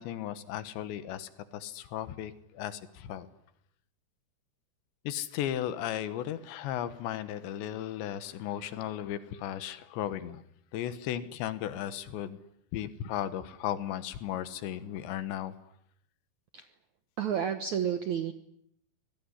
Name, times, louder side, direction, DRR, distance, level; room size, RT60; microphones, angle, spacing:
voice 1, 0.0-3.3 5.1-10.4 10.7-12.4 12.7-15.5, left 11 dB, 80° left, 13 dB, 3.5 m, -35 dB
voice 2, 17.2-18.3, right 8 dB, 70° right, 9 dB, 1.7 m, -30 dB
25.5 x 20.0 x 9.9 m, 0.74 s
omnidirectional pair, 5.1 m